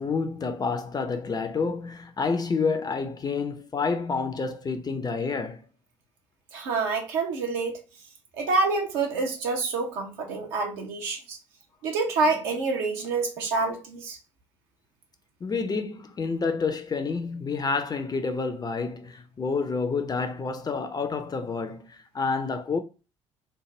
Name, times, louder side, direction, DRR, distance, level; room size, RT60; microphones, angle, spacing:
voice 1, 0.0-5.6 15.4-22.8, left 4 dB, 25° left, 0.6 m, -29 dB
voice 2, 6.5-7.8 8.4-11.4 11.8-14.2, right 3 dB, 70° right, 0.9 m, -27 dB
3.3 x 2.1 x 3.8 m
figure-of-eight pair, 50°, 15 cm